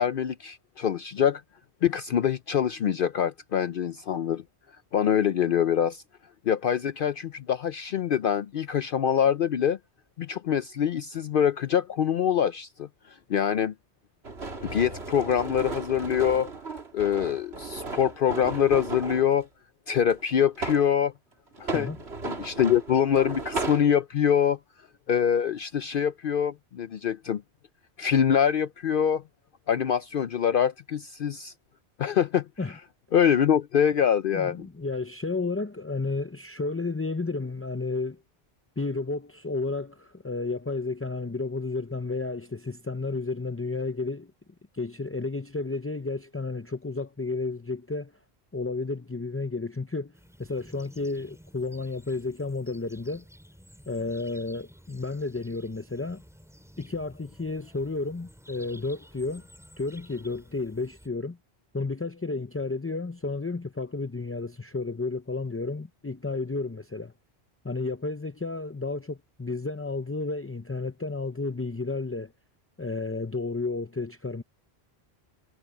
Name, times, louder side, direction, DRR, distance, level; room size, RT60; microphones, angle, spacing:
voice 1, 0.0-1.4 1.8-4.4 4.9-6.0 6.5-9.8 10.2-12.9 13.3-13.7 14.6-16.5 16.9-19.5 19.9-21.1 21.6-21.9 22.2-24.6 25.1-27.4 28.0-29.2 29.7-31.5 32.0-32.5 33.1-34.7, left 8 dB, 60° left, 0.7 m, -24 dB
sound 1, 14.2-19.3 20.1-20.9 21.5-23.9, right 3 dB, 70° right, 2.7 m, -35 dB
voice 2, 34.3-38.2 38.8-44.3 44.7-48.1 48.5-50.1 50.4-53.2 53.9-56.2 56.8-59.5 59.8-61.4 61.7-67.1 67.6-72.3 72.8-74.4, left 3 dB, 20° left, 0.4 m, -32 dB
sound 2, 50.1-61.1, equal, ahead, 5.4 m, -53 dB
omnidirectional pair, 1.1 m